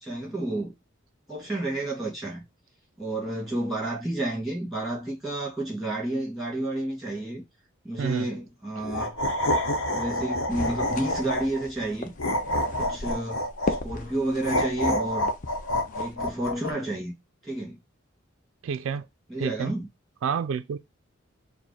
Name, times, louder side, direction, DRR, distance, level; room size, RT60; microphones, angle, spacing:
voice 1, 0.0-0.7 1.3-2.4 3.0-7.4 7.8-9.1 9.9-12.1 12.8-15.3 16.0-17.1 17.4-17.8 19.3-19.9, right 1 dB, ahead, 2.1 m, -31 dB
sound 1, 8.8-11.7 12.2-13.8 14.4-16.7, left 1 dB, 75° left, 0.9 m, -27 dB
sound 2, 10.5-16.2, left 3 dB, 40° left, 0.5 m, -37 dB
voice 2, 18.6-19.1 19.4-19.7 20.2-20.8, right 6 dB, 70° right, 0.3 m, -29 dB
4.6 x 2.1 x 4.1 m
head